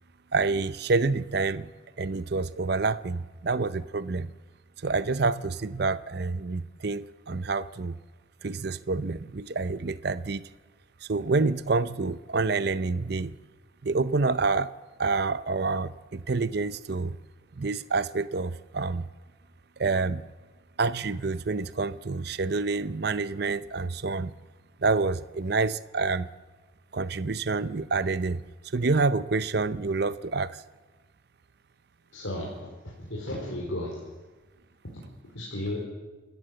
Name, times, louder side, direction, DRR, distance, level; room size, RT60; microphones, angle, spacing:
voice 1, 0.3-1.7 2.0-4.3 4.8-8.0 8.4-10.4 11.0-13.4 13.8-14.7 15.0-17.2 17.6-19.1 19.8-20.3 20.8-24.3 24.8-26.3 26.9-28.4 28.7-30.6, right 3 dB, 55° right, 15 dB, 0.6 m, -27 dB
voice 2, 32.1-34.0 35.2-35.9, left 1 dB, 80° left, -3 dB, 4.6 m, -34 dB
29.0 x 14.0 x 7.8 m, 1.3 s
head